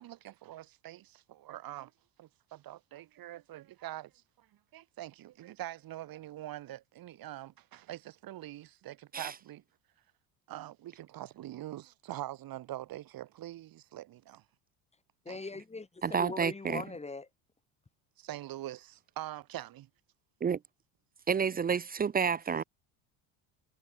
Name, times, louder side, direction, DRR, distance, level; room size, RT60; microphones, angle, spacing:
voice 1, 0.0-1.9 2.2-4.5 4.7-9.6 10.5-14.4 15.3-15.4 18.2-19.9, right 14 dB, 55° right, 2.9 m, -44 dB
voice 2, 15.3-17.3, left 3 dB, 15° left, 4.0 m, -40 dB
voice 3, 16.0-16.8 20.4-20.6 21.3-22.6, right 6 dB, 20° right, 0.5 m, -29 dB
supercardioid pair, 95°, 42 cm